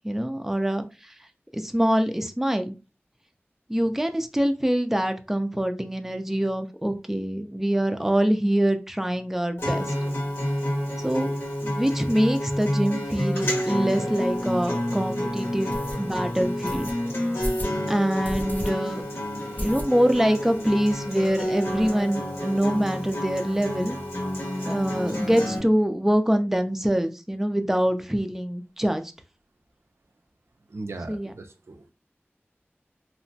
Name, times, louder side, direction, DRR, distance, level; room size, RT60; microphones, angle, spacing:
voice 1, 0.0-0.8 1.5-2.8 3.7-9.9 11.0-11.3 11.6-16.9 17.9-19.0 19.4-24.0 24.6-29.0 31.1-31.3, equal, 10° right, 0.4 m, -24 dB
Acoustic guitar, 9.6-25.6, left 1 dB, 75° left, 1.4 m, -29 dB
sound 1, 15.7-16.0 16.7-16.9 17.4-17.8 18.2-18.7 19.0-19.1 19.6-20.2 20.6-20.7 20.9-21.0 21.3-21.9, equal, 40° left, 0.6 m, -33 dB
voice 2, 30.7-31.8, right 2 dB, 85° right, 0.4 m, -38 dB
2.8 x 2.1 x 2.7 m
wide cardioid pair, 55°, 4 cm